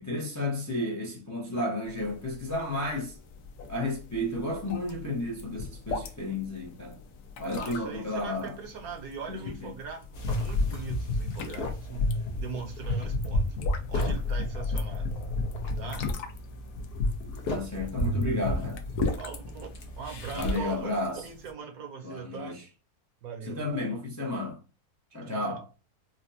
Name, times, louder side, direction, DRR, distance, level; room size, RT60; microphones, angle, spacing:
voice 1, 0.0-3.2 3.7-7.0 7.4-8.6 9.3-9.7 17.5-18.8 20.3-21.3 22.0-22.7 23.4-24.6 25.1-25.7, left 1 dB, 25° left, 0.3 m, -32 dB
sound 1, 1.8-21.5, left 3 dB, 90° left, 1.1 m, -40 dB
voice 2, 7.5-13.6 13.9-15.1 15.8-16.1 19.1-19.7 20.0-20.9 21.2-22.6 23.2-23.6 25.3-25.6, right 6 dB, 70° right, 1.2 m, -40 dB
sound 2, 10.1-20.7, left 2 dB, 50° left, 0.8 m, -31 dB
4.1 x 2.1 x 2.7 m
omnidirectional pair, 1.6 m